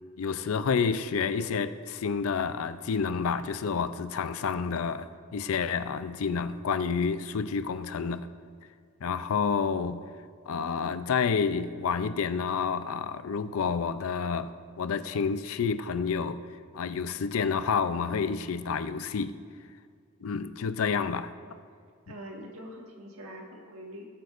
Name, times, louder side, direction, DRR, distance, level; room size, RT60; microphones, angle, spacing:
voice 1, 0.2-8.3 9.0-10.0 10.5-14.5 14.8-16.4 16.7-19.4 20.2-21.3, left 5 dB, 70° left, 12 dB, 0.4 m, -29 dB
voice 2, 20.8-21.4 22.1-24.1, equal, 70° right, 0 dB, 1.6 m, -44 dB
18.5 x 7.9 x 2.5 m, 2.1 s
head